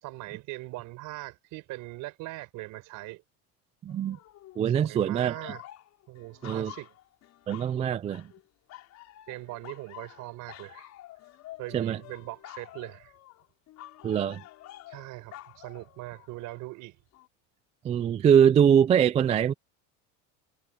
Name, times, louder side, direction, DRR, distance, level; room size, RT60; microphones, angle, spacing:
voice 1, 0.0-3.2 4.7-5.6 6.1-6.9 9.3-10.9 11.6-13.1 14.9-17.0, right 19 dB, 55° right, 4.7 m, -41 dB
voice 2, 3.8-4.2 4.6-5.5 6.4-6.7 7.5-8.2 11.7-12.0 14.0-14.4 17.8-19.5, right 8 dB, 20° right, 0.3 m, -23 dB
Malu the Blues Dog Queen, 3.9-4.7 5.0-7.8 8.1-8.4 8.7-16.6 17.1-17.3, left 15 dB, 45° left, 4.8 m, -49 dB
cardioid pair, 150°, 38 cm